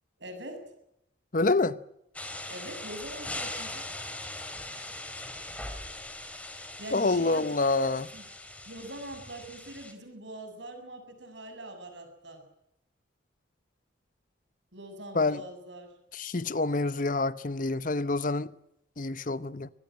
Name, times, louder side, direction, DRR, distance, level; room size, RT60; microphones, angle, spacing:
voice 1, 0.2-0.7 2.5-3.9 6.8-7.5 7.9-8.3 8.7-12.4 14.7-15.9, right 1 dB, 70° right, 7.2 m, -43 dB
voice 2, 1.3-1.8 6.9-8.1 15.1-15.4 16.1-18.5 19.0-19.7, left 3 dB, 45° left, 0.8 m, -27 dB
sound 1, 2.1-9.9, left 1 dB, 5° left, 3.0 m, -40 dB
23.5 x 20.5 x 7.7 m
head